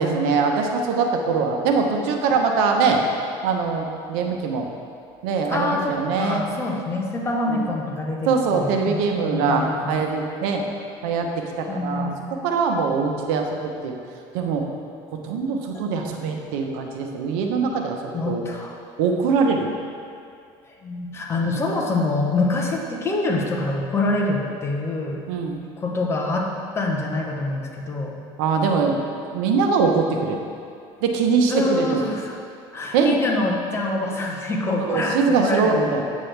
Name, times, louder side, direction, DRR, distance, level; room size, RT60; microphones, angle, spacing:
voice 1, 0.0-3.0 3.4-4.7 5.2-6.5 7.5-7.7 8.3-10.6 11.0-13.9 14.3-14.6 15.1-18.4 19.0-19.7 25.3-25.6 28.4-29.0 29.3-30.4 31.0-32.0 32.9-33.2 34.8-36.0, right 5 dB, 80° right, 3 dB, 1.0 m, -22 dB
voice 2, 5.5-10.0 11.7-12.3 15.7-15.8 18.1-18.8 20.7-25.2 25.8-28.2 31.5-32.4 32.7-36.0, left 2 dB, 20° left, 0 dB, 1.0 m, -26 dB
8.3 x 7.6 x 3.4 m, 2.4 s
cardioid pair, 135°, 11 cm